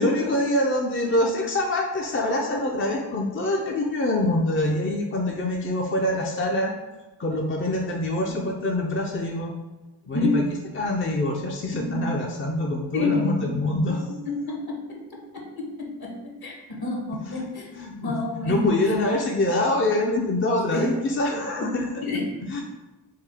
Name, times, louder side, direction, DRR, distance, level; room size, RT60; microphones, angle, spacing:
voice 1, 0.0-6.7 7.2-9.5 10.1-14.1 17.2-17.5 17.7-22.1 22.4-22.6, left 1 dB, 25° left, 0 dB, 0.5 m, -25 dB
voice 2, 11.7-12.0 12.9-13.8 14.1-18.8 20.7-20.9 21.6-21.7 22.0-22.6, left 3 dB, 55° left, 0 dB, 1.1 m, -29 dB
3.7 x 2.4 x 3.5 m, 1.1 s
supercardioid pair, 50°, 46 cm